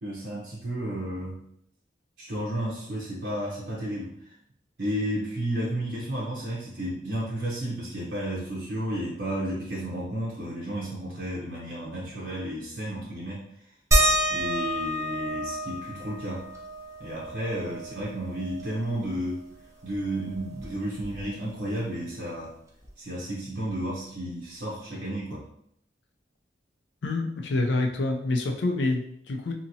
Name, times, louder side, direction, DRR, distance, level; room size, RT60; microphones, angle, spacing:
voice 1, 0.0-1.4 2.2-4.1 4.8-13.4 14.3-16.5 17.0-19.4 19.8-22.5 23.0-25.4, right 1 dB, 70° right, -6 dB, 0.7 m, -32 dB
sound 1, 13.9-19.0 19.4-19.5 19.8-21.6 22.8-22.9 23.7-23.8, equal, 15° right, 0.5 m, -29 dB
voice 2, 27.0-29.5, left 2 dB, 80° left, 3 dB, 0.5 m, -27 dB
2.8 x 2.7 x 2.7 m, 0.72 s
head